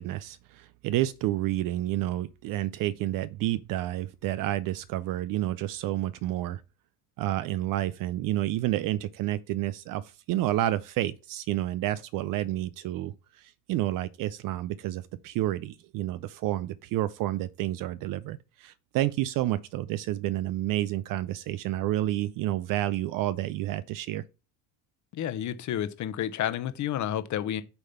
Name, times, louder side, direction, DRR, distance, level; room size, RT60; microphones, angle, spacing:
voice 1, 0.0-6.6 7.2-24.2, right 14 dB, 50° right, 0.5 m, -30 dB
voice 2, 25.1-27.6, left 10 dB, 40° left, 0.9 m, -30 dB
6.8 x 3.7 x 5.7 m
supercardioid pair, 105°, 45 cm